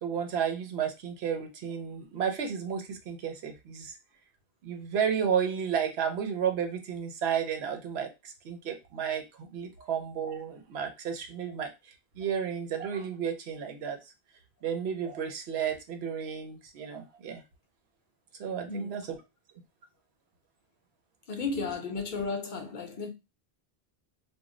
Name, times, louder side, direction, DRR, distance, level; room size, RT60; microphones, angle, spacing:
voice 1, 0.0-4.0 4.6-11.7 12.2-14.0 14.6-17.4 18.4-19.0, right 7 dB, 85° right, 0.9 m, -32 dB
voice 2, 21.3-23.1, left 4 dB, 55° left, 0.6 m, -34 dB
2.2 x 2.0 x 3.6 m
omnidirectional pair, 1.1 m